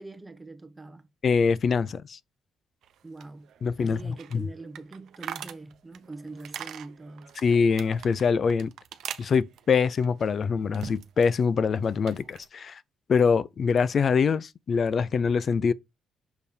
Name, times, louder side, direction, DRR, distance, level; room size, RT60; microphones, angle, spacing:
voice 1, 0.0-1.1 3.0-3.5 3.8-7.3, right 3 dB, 15° right, 1.1 m, -43 dB
voice 2, 1.2-2.2 3.6-4.4 7.4-8.7 9.2-12.8 13.1-15.7, left 5 dB, 50° left, 0.5 m, -24 dB
sound 1, 2.8-11.4 11.6-12.5, right 9 dB, 75° right, 0.8 m, -43 dB
6.8 x 3.4 x 4.2 m
cardioid pair, 90°, 0 cm